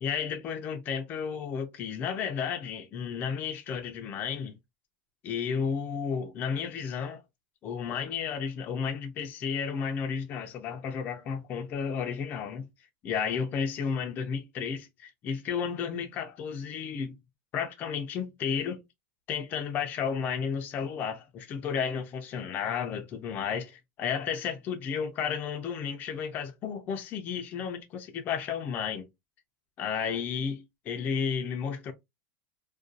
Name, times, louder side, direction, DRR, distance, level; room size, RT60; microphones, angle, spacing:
voice 1, 0.0-4.6 5.2-7.2 7.6-12.7 13.0-17.2 17.5-18.8 19.3-29.1 29.8-31.9, left 6 dB, 25° left, 0.4 m, -32 dB
2.4 x 2.2 x 2.6 m
supercardioid pair, 165°, 7 cm